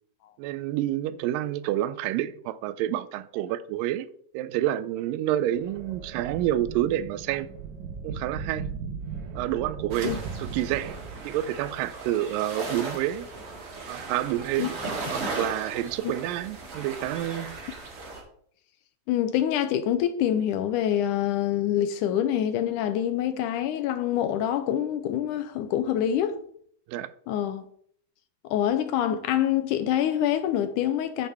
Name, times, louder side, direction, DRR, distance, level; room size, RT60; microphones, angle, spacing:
voice 1, 0.4-4.1 4.3-7.5 8.0-8.7 9.4-11.0 11.2-13.3 13.9-14.8 15.1-17.6 26.9-27.1, right 13 dB, 85° right, 2.2 m, -28 dB
sound 1, 5.5-11.6, right 5 dB, 70° right, 2.5 m, -38 dB
sound 2, 9.9-18.2, right 3 dB, 45° right, 2.7 m, -37 dB
voice 2, 19.1-26.4 27.3-27.6 28.5-31.3, left 10 dB, 80° left, 2.0 m, -26 dB
9.6 x 8.2 x 3.5 m
omnidirectional pair, 3.9 m